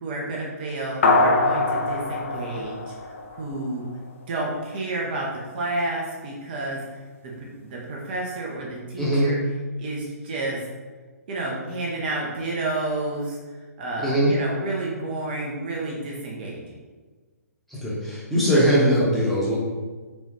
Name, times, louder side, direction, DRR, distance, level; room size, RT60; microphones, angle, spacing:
voice 1, 0.0-3.9 4.3-5.3 5.5-9.4 9.8-10.6 11.3-16.6, right 2 dB, 35° right, -3 dB, 0.6 m, -30 dB
sound 1, 1.0-3.7, left 2 dB, 50° left, 0.4 m, -23 dB
voice 2, 9.0-9.3 14.0-14.3 17.7-19.6, equal, ahead, -9 dB, 0.8 m, -21 dB
4.0 x 2.3 x 3.3 m, 1.3 s
figure-of-eight pair, 125°, 9 cm